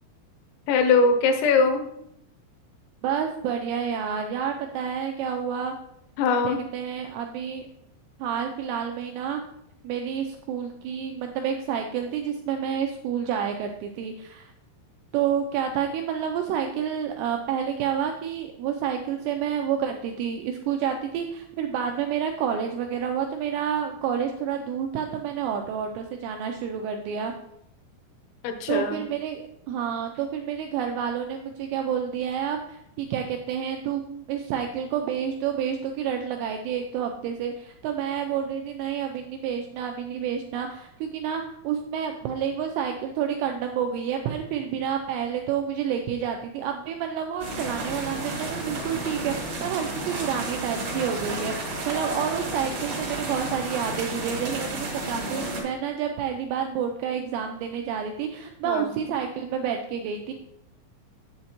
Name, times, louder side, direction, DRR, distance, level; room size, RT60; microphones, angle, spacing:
voice 1, 0.7-1.8 6.2-6.6 28.4-29.0 58.6-58.9, left 4 dB, 80° left, 6 dB, 3.0 m, -21 dB
voice 2, 3.0-5.7 6.4-7.7 8.2-9.4 9.8-14.5 15.1-27.3 28.7-60.3, right 8 dB, 85° right, 4 dB, 2.4 m, -29 dB
sound 1, 47.4-55.6, right 2 dB, 60° right, 1.6 m, -32 dB
7.7 x 7.5 x 2.9 m, 0.79 s
omnidirectional pair, 5.4 m